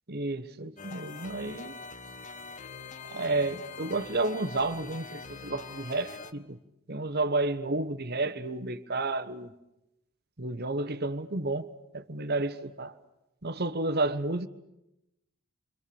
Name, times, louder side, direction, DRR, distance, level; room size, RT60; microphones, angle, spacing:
voice 1, 0.1-1.8 3.0-6.6 6.9-9.5 10.4-11.7 11.9-12.9 13.4-14.5, right 2 dB, 45° right, 1.3 m, -31 dB
sound 1, 0.8-6.3, left 4 dB, 35° left, 1.2 m, -44 dB
29.5 x 25.5 x 7.1 m
head